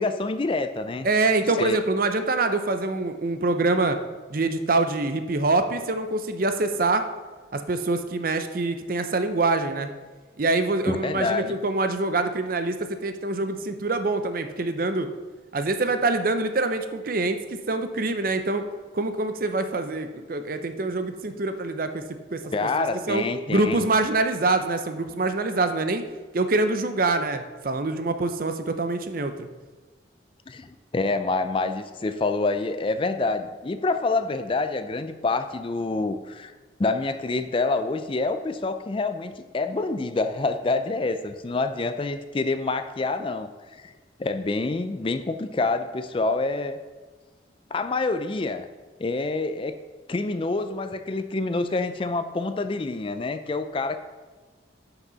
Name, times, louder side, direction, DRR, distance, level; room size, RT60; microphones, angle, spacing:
voice 1, 0.0-1.1 1.6-1.8 10.9-11.5 22.5-23.9 30.5-36.5 36.8-43.9 44.2-46.8 47.7-48.7 49.0-49.8 50.1-54.0, left 3 dB, 30° left, 10 dB, 0.4 m, -27 dB
voice 2, 1.0-4.0 4.3-7.0 7.5-9.9 10.4-15.1 15.5-18.6 18.9-26.1 26.3-29.5, right 3 dB, 50° right, 8 dB, 0.6 m, -25 dB
11.0 x 5.9 x 4.0 m, 1.3 s
head